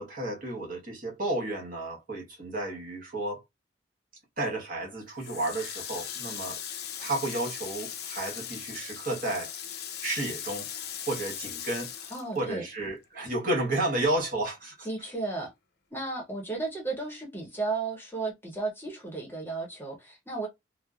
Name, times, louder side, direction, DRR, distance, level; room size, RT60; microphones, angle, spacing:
voice 1, 0.0-3.4 4.4-6.6 7.0-9.5 10.0-10.7 11.1-15.1, right 2 dB, 50° right, 1.1 m, -32 dB
Water tap faucet, 5.2-13.0 13.4-14.7, left 9 dB, 60° left, 0.5 m, -39 dB
voice 2, 12.1-12.7 14.8-15.5 15.9-20.5, right 3 dB, 10° left, 0.8 m, -34 dB
3.1 x 2.0 x 2.3 m
head